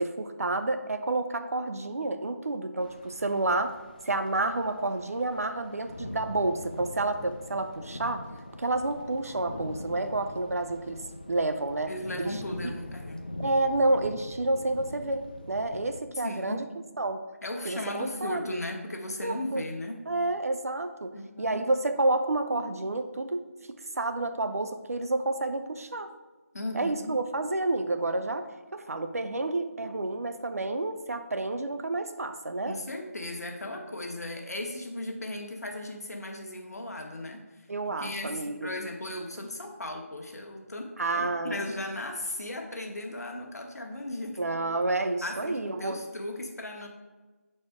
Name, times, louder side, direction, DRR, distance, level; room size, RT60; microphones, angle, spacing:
voice 1, 0.0-3.7 4.0-8.2 8.6-11.0 11.3-11.9 12.2-12.7 13.4-16.7 17.0-17.2 17.6-18.6 19.2-19.6 20.1-26.1 26.7-32.8 37.7-38.7 41.0-41.6 44.4-46.0, right 2 dB, 65° right, 8 dB, 0.6 m, -29 dB
sound 1, 2.8-16.0, left 1 dB, 35° left, 0.4 m, -43 dB
voice 2, 11.9-13.2 16.2-16.7 17.4-20.0 21.1-21.6 26.5-27.1 32.7-37.6 38.0-44.4 45.2-46.9, left 1 dB, 80° left, 3 dB, 1.2 m, -36 dB
6.5 x 4.3 x 3.5 m, 1.3 s
figure-of-eight pair, 175°, 8 cm